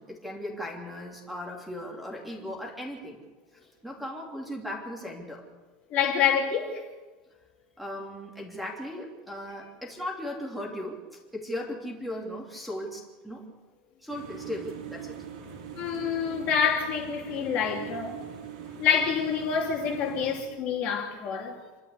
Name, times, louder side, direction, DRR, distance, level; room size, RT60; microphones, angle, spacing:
voice 1, 0.0-3.2 3.6-5.5 7.8-11.0 11.3-13.5 14.0-15.2, left 1 dB, ahead, 3.2 m, -37 dB
voice 2, 5.9-6.8 15.8-18.2 18.8-21.6, left 7 dB, 35° left, 3.1 m, -27 dB
sound 1, 14.1-20.4, right 8 dB, 80° right, 4.9 m, -41 dB
28.0 x 12.5 x 8.3 m
supercardioid pair, 175°, 4 cm